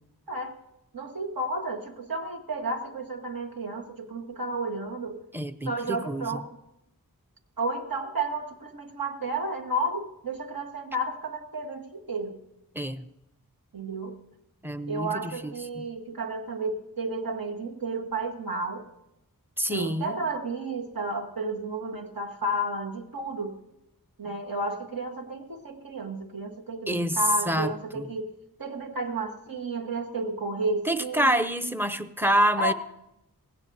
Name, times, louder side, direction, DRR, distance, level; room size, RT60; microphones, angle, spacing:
voice 1, 0.9-5.2 5.6-6.5 7.6-12.4 13.7-14.2 14.9-18.9 19.7-23.6 24.2-28.3 28.6-31.3 32.6-32.7, right 2 dB, 70° right, 2 dB, 1.5 m, -32 dB
voice 2, 5.3-6.4 12.7-13.1 14.6-15.8 19.6-20.2 26.9-27.2 27.5-28.1 30.9-32.7, right 1 dB, 5° right, 9 dB, 0.7 m, -27 dB
18.5 x 16.0 x 2.7 m, 0.86 s
wide cardioid pair, 45°, 36 cm